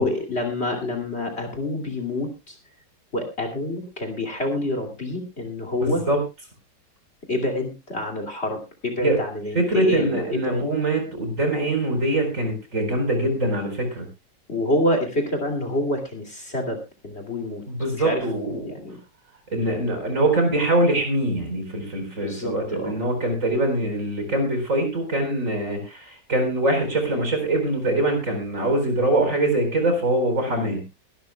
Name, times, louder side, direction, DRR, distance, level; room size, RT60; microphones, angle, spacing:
voice 1, 0.0-2.6 3.1-6.0 7.3-10.7 14.5-17.6 17.9-18.2 18.6-19.0 22.1-23.0 30.5-30.7, left 1 dB, 35° left, 6 dB, 2.9 m, -27 dB
voice 2, 5.8-6.2 9.0-9.2 9.5-14.1 17.7-18.7 19.5-30.8, right 1 dB, 45° right, 5 dB, 4.8 m, -23 dB
22.0 x 12.5 x 2.2 m, 0.27 s
omnidirectional pair, 1.9 m